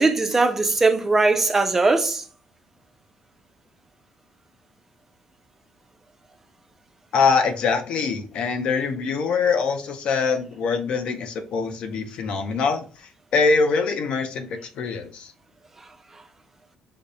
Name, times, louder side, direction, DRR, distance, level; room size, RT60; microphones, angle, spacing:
voice 1, 0.0-2.2, right 3 dB, 15° right, 0.4 m, -20 dB
voice 2, 7.1-12.8 13.3-15.3, left 5 dB, 50° left, 0.5 m, -23 dB
5.0 x 2.0 x 2.6 m
cardioid pair, 170°, 2 cm